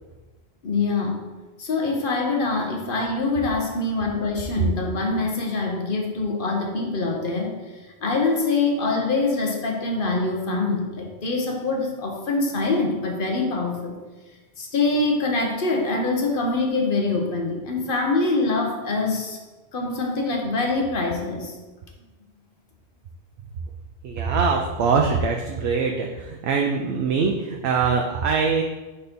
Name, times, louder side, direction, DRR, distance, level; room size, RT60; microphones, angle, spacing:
voice 1, 0.6-1.2 1.6-7.5 8.0-14.0 14.6-19.4 19.7-21.5, left 3 dB, 55° left, 1 dB, 1.1 m, -24 dB
voice 2, 24.0-28.6, right 5 dB, 75° right, 2 dB, 0.8 m, -23 dB
4.3 x 4.2 x 5.2 m, 1.2 s
omnidirectional pair, 1.1 m